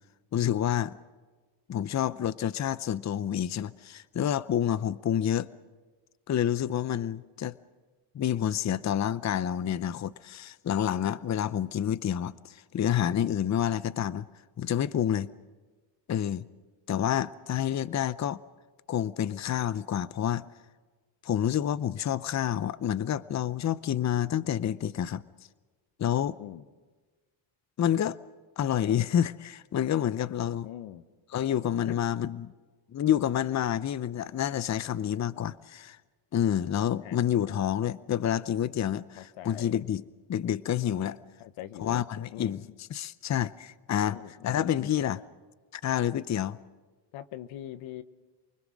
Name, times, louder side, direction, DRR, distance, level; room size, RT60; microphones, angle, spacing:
voice 1, 0.3-1.0 1.7-5.5 6.3-7.5 8.1-14.3 14.6-15.3 16.1-16.5 16.9-18.4 18.9-20.4 21.2-25.2 26.0-26.4 27.8-28.2 28.6-30.7 31.3-32.5 32.9-36.0 36.3-40.0 40.3-41.2 41.8-42.6 42.9-44.2 44.4-45.2 45.7-46.6, left 10 dB, 35° left, 0.7 m, -28 dB
voice 2, 30.6-31.0 31.9-32.0 37.0-37.2 39.2-39.7 41.4-42.0 42.3-42.6 44.1-44.7 47.1-48.0, left 12 dB, 85° left, 1.1 m, -42 dB
28.5 x 21.0 x 6.3 m
cardioid pair, 90°, 46 cm